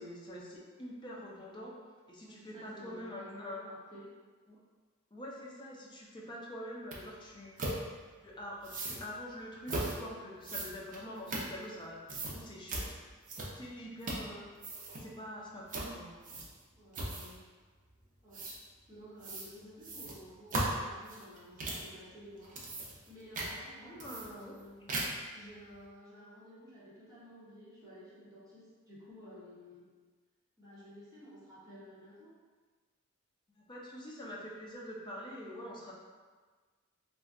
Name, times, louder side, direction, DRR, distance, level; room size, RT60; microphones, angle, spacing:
voice 1, 0.0-1.7 2.1-3.8 4.5-4.6 5.1-7.6 8.2-13.0 13.6-14.5 14.9-16.4 23.8-24.5 33.5-35.9, left 1 dB, 20° left, -3 dB, 0.4 m, -45 dB
voice 2, 2.2-4.0 16.7-17.4 18.2-18.5 18.9-22.6 23.1-25.0 25.3-29.9 30.6-32.3, equal, 15° right, -11 dB, 1.0 m, -52 dB
sound 1, 6.9-7.0 7.6-7.8 8.6-9.0 9.7-10.0 10.4-11.8 12.1-12.4 12.7-12.9 13.3-13.7 14.0-14.3 14.6-15.0 15.7-15.9 16.2-16.6 16.9-17.4 18.3-18.6 19.2-19.5 19.8-21.9 22.4-23.1 23.3-23.5 24.0-24.6 24.9-25.3, right 2 dB, 40° right, 0.5 m, -37 dB
2.4 x 2.2 x 3.6 m, 1.4 s
head